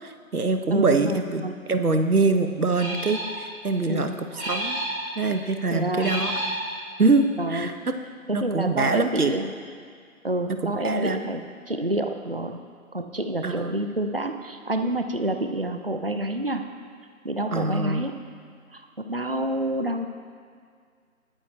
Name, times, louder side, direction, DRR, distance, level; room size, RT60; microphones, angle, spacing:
voice 1, 0.0-1.4 1.7-4.8 5.2-6.3 7.0-8.0 8.3-9.4 10.5-11.3 13.4-13.8 17.5-18.0, right 3 dB, 85° right, 7 dB, 1.2 m, -24 dB
voice 2, 0.7-1.5 3.9-4.1 5.7-6.2 7.4-7.7 8.3-9.5 10.2-12.6 12.9-16.6 17.2-18.1 18.7-18.8 19.1-20.1, right 1 dB, 40° right, 6 dB, 0.6 m, -28 dB
sound 1, 2.7-3.4 4.3-5.0 5.9-6.6, right 1 dB, 10° right, 2.6 m, -30 dB
21.5 x 9.1 x 2.8 m, 2.1 s
figure-of-eight pair, 175°, 43 cm